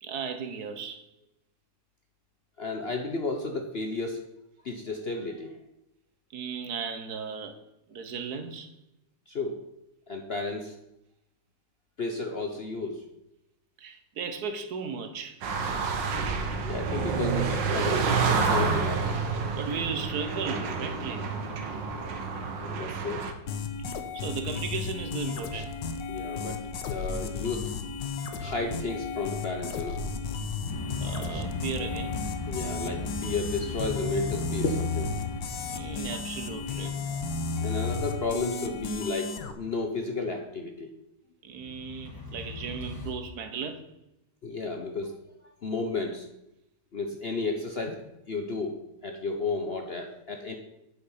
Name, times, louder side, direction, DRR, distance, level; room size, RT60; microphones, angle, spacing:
voice 1, 0.0-1.0 6.3-7.5 7.9-8.7 13.8-15.4 19.5-21.3 24.1-25.7 31.0-32.2 35.7-37.0 41.4-43.9, right 5 dB, 65° right, 1.3 m, -36 dB
voice 2, 2.6-4.2 4.6-5.6 9.3-9.6 10.1-10.8 12.0-13.0 16.6-18.1 18.4-19.1 22.6-23.2 26.1-27.7 28.4-30.0 32.5-35.1 37.1-37.2 37.6-40.9 44.4-45.2 45.6-46.3 46.9-48.0 48.3-50.5, left 3 dB, 50° left, 0.8 m, -33 dB
sound 1, 15.4-23.3, right 4 dB, 90° right, 1.7 m, -28 dB
sound 2, 23.5-39.5, left 4 dB, 85° left, 1.6 m, -34 dB
sound 3, 30.6-38.2 41.6-43.1, left 3 dB, 15° left, 1.1 m, -38 dB
8.7 x 7.2 x 5.5 m
omnidirectional pair, 1.9 m